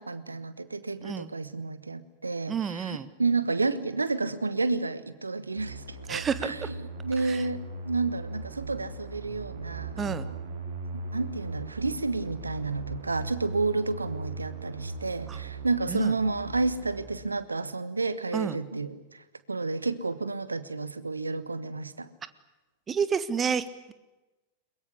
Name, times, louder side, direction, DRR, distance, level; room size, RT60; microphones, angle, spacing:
voice 1, 0.0-6.6 7.0-7.6 7.8-10.4 10.9-19.0 19.5-22.1, right 3 dB, 80° right, 15 dB, 1.4 m, -30 dB
voice 2, 2.5-3.1 6.1-6.7 7.2-7.4 10.0-10.3 15.3-15.4 15.9-16.1 18.3-18.6 22.9-23.9, right 6 dB, 20° right, 15 dB, 1.5 m, -30 dB
sound 1, 5.6-17.1, right 3 dB, 60° right, 5.4 m, -39 dB
22.0 x 22.0 x 10.0 m, 1.1 s
figure-of-eight pair, 90°, 0 cm